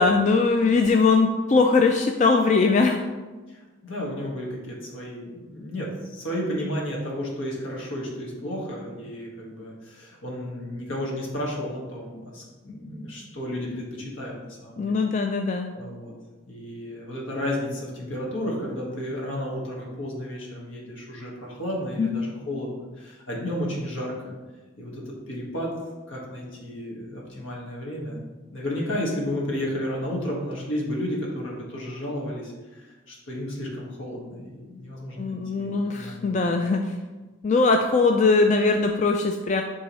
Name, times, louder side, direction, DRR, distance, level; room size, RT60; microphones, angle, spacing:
voice 1, 0.0-3.0 14.8-15.7 22.0-22.3 35.2-37.0 37.4-39.6, left 4 dB, 35° left, 4 dB, 0.3 m, -21 dB
voice 2, 3.5-14.9 15.7-16.1 16.5-24.3 24.7-25.7 26.1-28.2 28.5-36.5, left 1 dB, 80° left, -3 dB, 1.7 m, -32 dB
10.0 x 3.6 x 3.1 m, 1.3 s
head